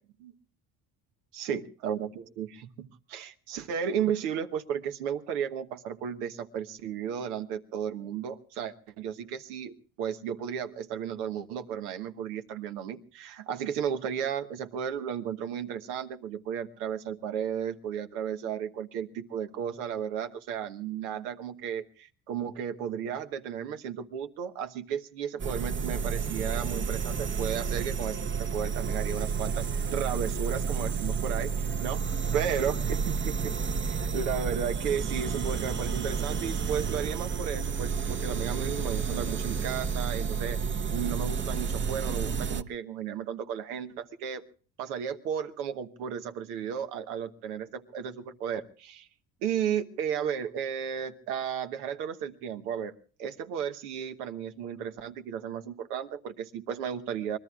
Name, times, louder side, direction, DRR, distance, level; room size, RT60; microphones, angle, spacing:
voice 1, 1.3-28.2 28.5-31.5 31.8-32.0 32.3-40.6 40.9-44.4 44.8-49.1 49.4-57.4, right 8 dB, 85° right, 8 dB, 1.3 m, -34 dB
sound 1, 25.4-42.6, right 6 dB, 25° right, 0.8 m, -31 dB
25.0 x 20.0 x 2.4 m, 0.40 s
hypercardioid pair, 70°, 44 cm